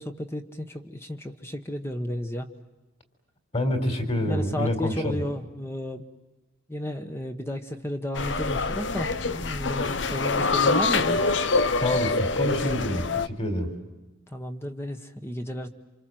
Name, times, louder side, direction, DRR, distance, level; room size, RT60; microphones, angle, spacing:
voice 1, 0.0-2.5 4.0-6.0 6.7-11.2 14.3-15.7, left 1 dB, 10° left, 6 dB, 1.2 m, -33 dB
voice 2, 3.5-5.2 11.8-13.8, left 1 dB, 30° left, 7 dB, 4.0 m, -27 dB
sound 1, 8.1-13.3, left 3 dB, 65° left, 0.9 m, -25 dB
28.0 x 27.0 x 7.7 m, 1.1 s
head